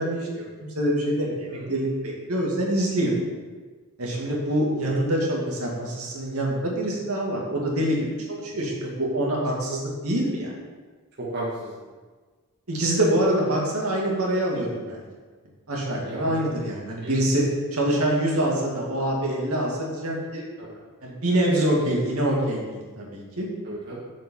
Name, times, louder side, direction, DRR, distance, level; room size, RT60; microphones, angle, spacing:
voice 1, 0.0-3.1 4.0-8.0 8.3-10.5 12.7-15.0 15.7-17.4 17.7-20.4 21.0-23.5, right 1 dB, 70° right, -3 dB, 2.3 m, -25 dB
voice 2, 1.3-1.7 4.1-4.4 4.8-4.9 8.5-8.7 11.2-11.9 16.0-16.5 17.0-17.2 20.6-20.8 23.6-24.0, right 1 dB, 50° right, -6 dB, 1.6 m, -36 dB
7.4 x 5.4 x 7.2 m, 1.4 s
head